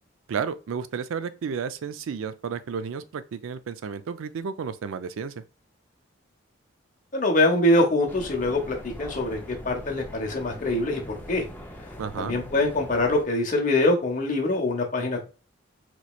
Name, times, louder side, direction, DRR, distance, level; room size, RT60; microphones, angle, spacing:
voice 1, 0.3-5.4 12.0-12.4, right 6 dB, 75° right, 0.4 m, -32 dB
voice 2, 7.1-11.0 11.3-11.4 12.2-15.3, left 2 dB, 40° left, 0.9 m, -24 dB
sound 1, 8.1-13.2, equal, 10° left, 0.5 m, -41 dB
4.1 x 3.0 x 2.4 m
head